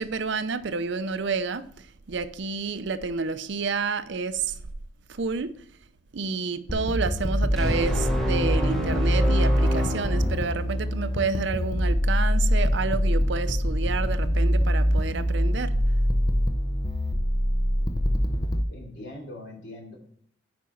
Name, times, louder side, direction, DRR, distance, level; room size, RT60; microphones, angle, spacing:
voice 1, 0.0-1.6 2.1-4.5 5.1-5.5 6.1-15.8, right 4 dB, 60° right, 0.5 m, -29 dB
sound 1, 6.7-18.6, equal, 20° left, 0.6 m, -24 dB
sound 2, 7.6-11.0, equal, ahead, 1.0 m, -29 dB
voice 2, 18.7-20.0, left 1 dB, 60° left, 2.9 m, -41 dB
8.4 x 5.2 x 4.4 m
head